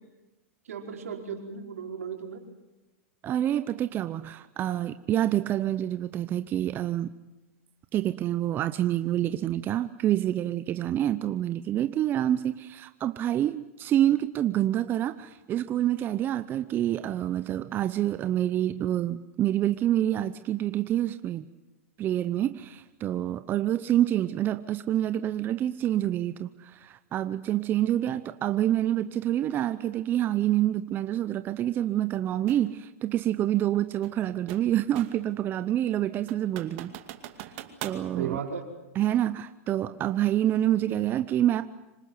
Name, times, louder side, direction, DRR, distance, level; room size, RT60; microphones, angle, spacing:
voice 1, 0.6-2.4 38.1-38.7, right 7 dB, 80° right, 2 dB, 5.1 m, -35 dB
voice 2, 3.2-7.1 7.9-21.4 22.0-36.9 37.8-38.4 38.9-41.6, right 12 dB, 25° right, 11 dB, 0.8 m, -27 dB
sound 1, 32.5-32.7 34.0-35.3 35.7-35.8 36.3-38.1, right 13 dB, 50° right, 2.4 m, -41 dB
26.0 x 19.5 x 9.6 m, 1.0 s
hypercardioid pair, 135°, 8 cm